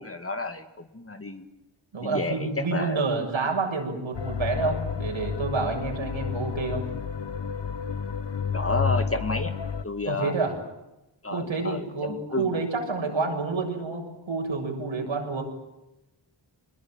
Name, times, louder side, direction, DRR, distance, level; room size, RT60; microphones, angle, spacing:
voice 1, 0.0-1.5 2.0-3.0 4.6-4.8 8.5-9.5 9.8-10.3 11.2-12.6, left 2 dB, 30° left, 8 dB, 2.3 m, -31 dB
voice 2, 1.9-6.9 10.0-10.6 11.3-15.4, right 4 dB, 75° right, 2 dB, 7.3 m, -29 dB
sound 1, 4.1-9.8, left 6 dB, 65° left, 1.4 m, -30 dB
26.0 x 21.5 x 9.2 m, 0.97 s
wide cardioid pair, 105°, 47 cm